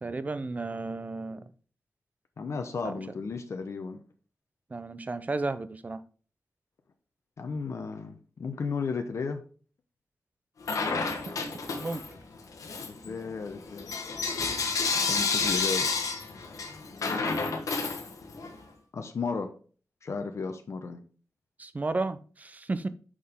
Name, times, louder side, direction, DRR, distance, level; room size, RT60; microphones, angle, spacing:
voice 1, 0.0-1.4 2.8-2.9 4.7-6.0 11.8-12.0 21.6-22.9, right 3 dB, 30° right, 0.5 m, -33 dB
voice 2, 2.4-4.0 7.4-9.4 12.8-13.9 15.1-15.9 18.9-19.5 20.0-21.0, left 4 dB, 60° left, 0.8 m, -34 dB
Bell / Coin (dropping), 10.6-12.2 12.6-18.6, left 4 dB, 85° left, 1.1 m, -30 dB
6.3 x 5.7 x 3.6 m
wide cardioid pair, 170°, 6 cm